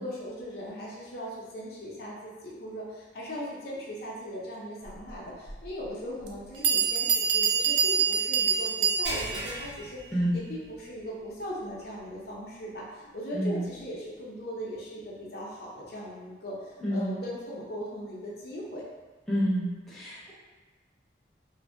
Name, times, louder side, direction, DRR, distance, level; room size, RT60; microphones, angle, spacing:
voice 1, 0.0-10.0 10.3-18.8, equal, 55° left, -5 dB, 0.5 m, -39 dB
Bell, 5.5-5.6 6.3-6.4 6.6-9.4, right 6 dB, 85° right, 0.4 m, -25 dB
sound 1, 9.0-10.9 11.3-11.5 12.0-12.1 13.7-13.8, equal, 60° right, 1.1 m, -38 dB
voice 2, 16.8-17.1 19.3-20.3, equal, ahead, -10 dB, 0.6 m, -28 dB
2.5 x 2.5 x 2.5 m, 1.3 s
head